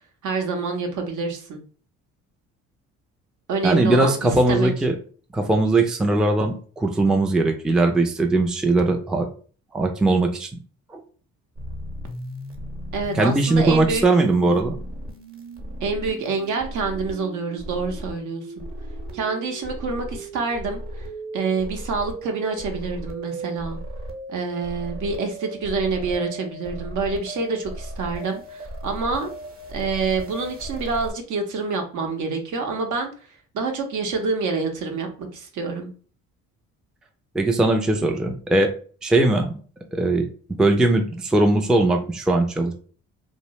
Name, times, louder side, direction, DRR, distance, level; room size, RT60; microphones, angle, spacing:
voice 1, 0.2-1.6 3.5-4.7 12.9-14.0 15.8-18.7 19.1-21.1 21.3-23.8 24.3-29.3 29.7-33.1 33.5-35.9, right 4 dB, 65° right, 4 dB, 0.8 m, -27 dB
voice 2, 3.6-5.0 5.3-9.3 9.7-10.6 10.9-11.0 13.1-14.8 37.3-38.7 39.0-39.5 39.9-40.3 40.6-42.7, right 2 dB, ahead, 4 dB, 0.3 m, -20 dB
sound 1, 11.6-31.1, right 1 dB, 45° right, 0.9 m, -36 dB
2.7 x 2.0 x 3.0 m, 0.41 s
supercardioid pair, 80°, 32 cm